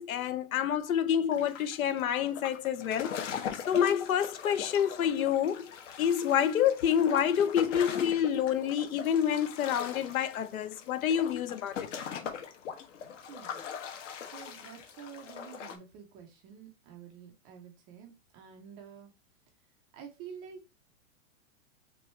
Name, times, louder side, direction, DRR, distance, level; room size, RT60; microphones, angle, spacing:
voice 1, 0.0-3.1 3.7-5.7 6.0-11.8, left 9 dB, 90° left, 0.7 m, -28 dB
sound 1, 1.3-15.8, left 7 dB, 60° left, 1.1 m, -41 dB
voice 2, 13.3-13.6 14.3-19.1 19.9-20.7, right 7 dB, 15° right, 0.3 m, -49 dB
6.2 x 2.6 x 3.0 m
hypercardioid pair, 140°, 41 cm